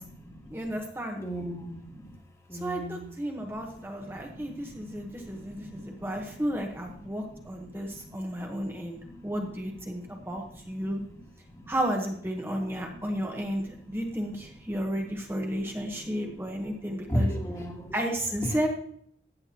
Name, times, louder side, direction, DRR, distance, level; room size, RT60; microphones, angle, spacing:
voice 1, 0.5-1.2 2.6-11.0 11.7-17.3 17.9-18.7, equal, 10° right, 1 dB, 1.1 m, -33 dB
voice 2, 1.2-1.7 2.5-3.0 17.1-17.9 18.4-18.6, equal, 15° left, 1 dB, 1.8 m, -31 dB
14.5 x 8.8 x 2.9 m, 0.67 s
head